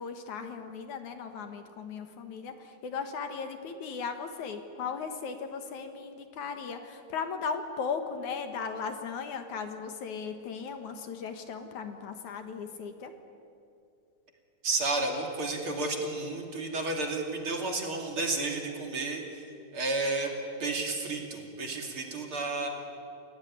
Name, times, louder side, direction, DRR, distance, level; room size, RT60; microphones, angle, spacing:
voice 1, 0.0-13.1, left 5 dB, 65° left, 7 dB, 2.7 m, -37 dB
voice 2, 14.6-19.4 19.7-20.3 20.6-22.7, right 3 dB, 40° right, 2 dB, 3.2 m, -32 dB
28.5 x 17.5 x 10.0 m, 2.6 s
omnidirectional pair, 3.8 m